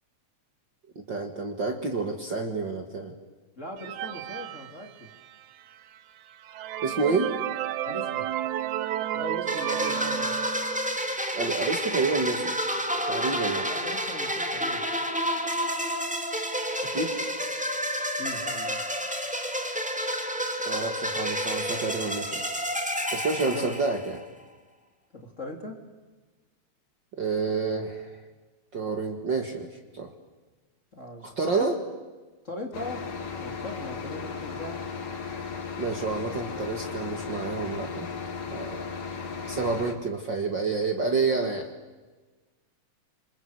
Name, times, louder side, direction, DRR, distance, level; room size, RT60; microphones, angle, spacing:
voice 1, 1.0-3.1 6.8-7.3 11.3-12.6 13.1-13.7 16.9-17.2 20.7-22.4 23.1-24.2 27.2-28.2 28.7-29.7 29.9-30.1 31.4-31.8 35.8-38.1 38.5-38.9 39.4-41.7, right 4 dB, 40° right, 5 dB, 2.3 m, -29 dB
voice 2, 3.6-5.1 7.9-8.3 9.1-10.3 13.7-14.8 18.2-18.8 23.4-23.7 25.1-25.8 30.9-31.7 32.4-33.1 33.4-34.8, left 1 dB, 25° left, 3 dB, 3.2 m, -39 dB
sound 1, 3.8-5.4 6.0-6.1 6.4-11.0, right 12 dB, 80° right, 2.4 m, -32 dB
sound 2, 9.5-24.2, equal, 5° right, 1.6 m, -30 dB
sound 3, 32.7-39.9, left 5 dB, 70° left, 4.3 m, -36 dB
27.5 x 27.0 x 8.0 m, 1.3 s
omnidirectional pair, 3.3 m